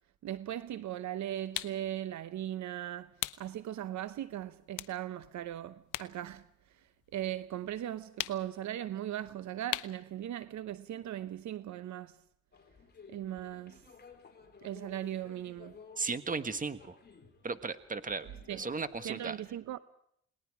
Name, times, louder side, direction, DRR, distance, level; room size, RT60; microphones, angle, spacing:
voice 1, 0.2-6.5 7.1-12.2 13.1-13.8 14.6-15.8 18.5-18.6 19.0-19.8, right 12 dB, 70° right, 0.9 m, -38 dB
sound 1, 1.5-1.8 3.2-3.5 4.0-4.1 4.7-6.2 6.5-7.5 8.2-8.6 9.7-10.1, left 15 dB, 85° left, 0.9 m, -38 dB
sound 2, 12.5-19.2, left 5 dB, 35° left, 3.8 m, -56 dB
voice 2, 16.0-17.0 17.4-19.4, right 4 dB, 25° right, 1.6 m, -36 dB
29.0 x 19.5 x 4.9 m
cardioid pair, 90°, 30 cm